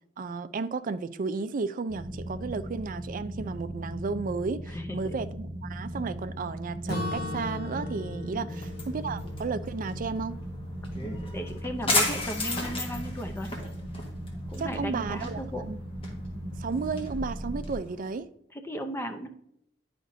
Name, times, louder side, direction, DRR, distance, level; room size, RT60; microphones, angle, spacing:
voice 1, 0.2-10.4 14.6-15.4 15.7-15.8 16.6-18.3, right 4 dB, 45° right, 0.4 m, -33 dB
sound 1, 1.9-17.8, equal, 30° right, 1.4 m, -38 dB
voice 2, 4.7-5.2 8.3-8.6 11.0-13.5 14.5-15.6 18.5-19.3, equal, 15° left, 0.7 m, -36 dB
Acoustic guitar / Strum, 6.9-10.8, left 3 dB, 60° left, 1.0 m, -39 dB
sound 2, 8.5-18.2, left 2 dB, 30° left, 1.5 m, -35 dB
10.0 x 5.0 x 2.7 m
head